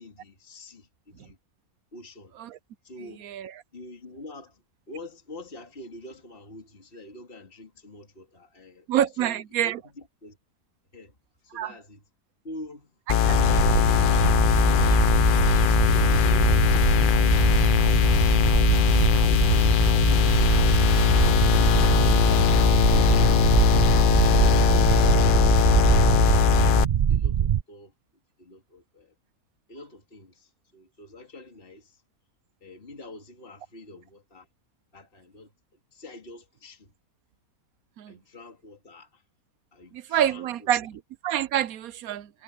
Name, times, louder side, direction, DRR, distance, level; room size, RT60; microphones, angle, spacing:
voice 1, 0.0-1.4 1.9-2.3 2.8-3.3 3.7-4.6 4.9-8.9 9.2-10.4 10.9-11.1 11.4-12.0 12.4-12.9 15.5-16.6 24.4-27.9 28.4-29.1 29.7-32.0 32.6-34.5 34.9-35.5 35.9-36.9 38.1-39.2 39.7-40.7, left 1 dB, 40° left, 2.8 m, -46 dB
voice 2, 3.2-3.5 8.9-9.8 11.5-11.7 13.3-13.4 22.3-22.4 24.9-25.1 38.0-38.2 39.9-42.3, right 11 dB, 85° right, 1.2 m, -27 dB
sound 1, 13.1-26.8, left 10 dB, 65° left, 0.5 m, -20 dB
sound 2, 13.2-27.6, right 9 dB, 70° right, 0.4 m, -23 dB
omnidirectional pair, 1.5 m